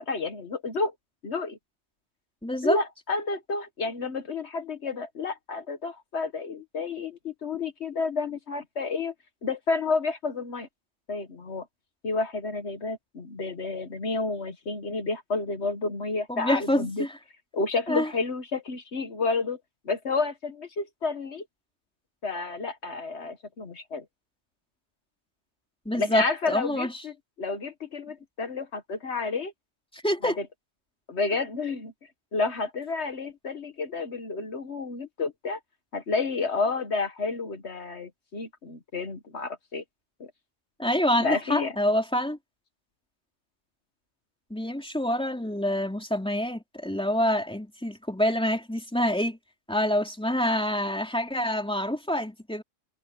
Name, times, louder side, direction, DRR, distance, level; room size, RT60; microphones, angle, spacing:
voice 1, 0.1-0.9 1.2-1.6 2.6-9.1 9.4-10.7 11.1-11.6 12.0-17.0 17.5-19.6 19.8-21.4 22.2-24.0 25.9-29.5 30.2-30.3 31.1-31.9 32.3-35.6 35.9-39.8 40.2-40.3 41.2-41.7, left 3 dB, 70° left, 1.7 m, -30 dB
voice 2, 2.4-2.8 16.3-17.1 17.9-18.1 25.8-26.9 29.9-30.4 40.8-42.4 44.5-49.4 49.7-52.6, left 1 dB, 5° left, 3.3 m, -26 dB
omnidirectional pair, 1.2 m